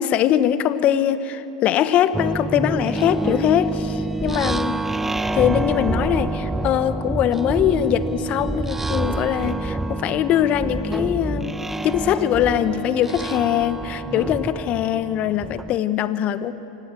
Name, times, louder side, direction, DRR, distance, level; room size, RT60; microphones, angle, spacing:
voice 1, 0.0-4.8 5.3-16.5, left 10 dB, 35° left, 13 dB, 1.3 m, -22 dB
sound 1, 2.1-15.8, right 2 dB, 5° right, 0.6 m, -27 dB
28.5 x 25.0 x 7.8 m, 3.0 s
hypercardioid pair, 105°, 4 cm